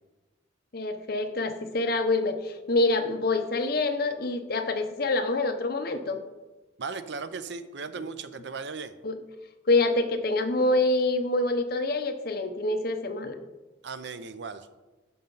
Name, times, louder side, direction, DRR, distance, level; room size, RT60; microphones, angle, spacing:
voice 1, 0.7-6.2 9.0-9.2 9.7-13.4, left 2 dB, 50° left, 7 dB, 0.8 m, -26 dB
voice 2, 6.8-8.9 13.8-14.7, right 4 dB, 60° right, 12 dB, 0.5 m, -37 dB
13.0 x 5.5 x 3.9 m, 1.2 s
head